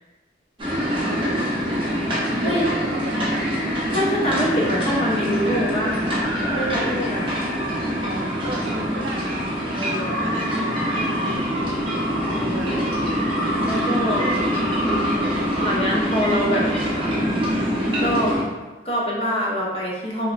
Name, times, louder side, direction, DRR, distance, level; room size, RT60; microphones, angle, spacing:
sound 1, 0.6-18.4, equal, 25° right, 0.6 m, -24 dB
voice 1, 1.0-1.9 2.4-3.5 8.0-9.5 10.1-11.7 12.5-12.9 14.0-14.5, right 2 dB, 85° right, 2 dB, 0.4 m, -35 dB
voice 2, 3.9-6.0 6.5-7.3 9.8-10.1 12.3-12.7 13.6-14.2 14.8-16.7 16.9-17.7 18.0-18.5 18.8-20.3, equal, 30° left, -4 dB, 0.5 m, -25 dB
2.9 x 2.1 x 2.4 m, 1.3 s
head